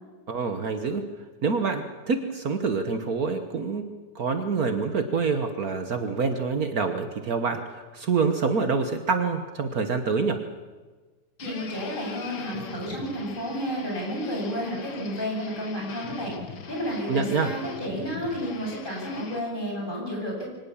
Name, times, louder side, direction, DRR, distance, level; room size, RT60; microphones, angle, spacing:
voice 1, 0.3-1.1 1.4-3.8 4.2-10.4 17.1-17.5, right 4 dB, 60° right, 7 dB, 1.7 m, -26 dB
sound 1, 11.4-19.4, left 6 dB, 70° left, 2.1 m, -42 dB
voice 2, 11.4-16.3 16.7-20.5, equal, 30° left, -2 dB, 8.4 m, -31 dB
23.5 x 19.0 x 7.2 m, 1.3 s
omnidirectional pair, 1.9 m